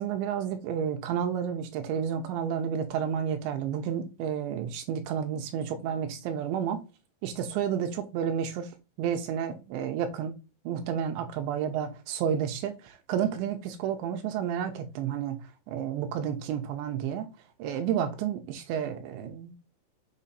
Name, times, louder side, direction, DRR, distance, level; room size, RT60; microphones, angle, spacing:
voice 1, 0.0-6.8 7.2-8.7 9.0-10.3 10.7-15.4 15.7-17.3 17.6-19.6, right 8 dB, 85° right, 2.9 m, -31 dB
7.4 x 2.7 x 5.5 m
omnidirectional pair, 5.5 m